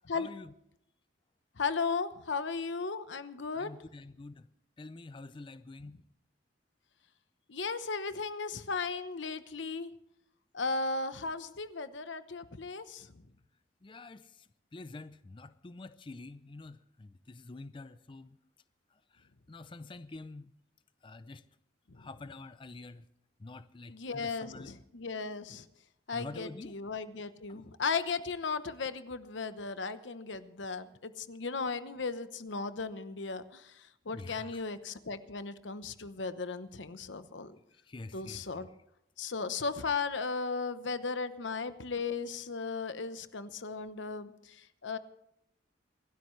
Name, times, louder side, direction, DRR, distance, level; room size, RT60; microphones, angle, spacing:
voice 1, 0.1-0.5 3.5-4.5 4.8-6.0 13.8-18.4 18.9-20.5 21.0-21.4 22.0-23.1 23.4-24.7 26.1-26.8 27.5-27.6 34.1-34.6 37.7-38.7, left 3 dB, 25° left, 12 dB, 0.4 m, -47 dB
voice 2, 1.6-3.7 7.5-9.9 10.5-13.1 23.9-25.7 26.1-37.5 38.1-38.7 39.2-45.0, left 4 dB, 80° left, 12 dB, 0.9 m, -36 dB
26.0 x 12.5 x 3.2 m, 0.78 s
head